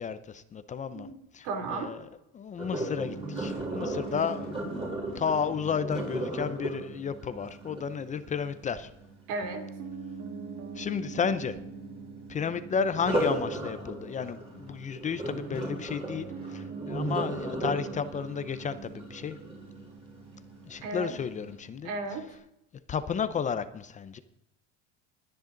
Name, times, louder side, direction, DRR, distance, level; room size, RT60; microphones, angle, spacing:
voice 1, 0.0-1.1 1.3-2.1 2.3-4.5 5.1-8.9 10.8-11.6 12.3-19.4 20.6-21.9 22.9-24.2, left 6 dB, 25° left, 12 dB, 0.6 m, -32 dB
voice 2, 1.4-1.9 9.3-9.6 20.8-21.1 21.8-22.3, right 3 dB, 75° right, 5 dB, 3.0 m, -34 dB
Sink (filling or washing), 2.6-8.5 12.9-20.0 20.5-20.8 21.3-21.4, right 1 dB, 20° right, 5.6 m, -35 dB
Piano, 3.0-22.4, right 4 dB, 40° right, 1.9 m, -44 dB
20.5 x 10.5 x 3.9 m, 0.86 s
cardioid pair, 155°, 32 cm